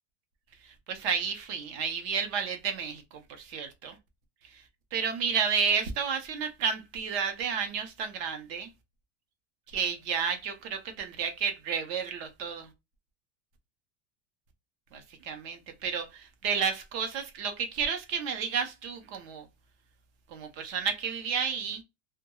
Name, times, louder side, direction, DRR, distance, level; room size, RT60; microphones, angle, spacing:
voice 1, 0.6-4.0 4.4-8.7 9.7-12.7 14.9-19.5 20.3-21.8, right 6 dB, 45° right, 0.7 m, -31 dB
2.2 x 2.1 x 2.8 m
supercardioid pair, 175°, 38 cm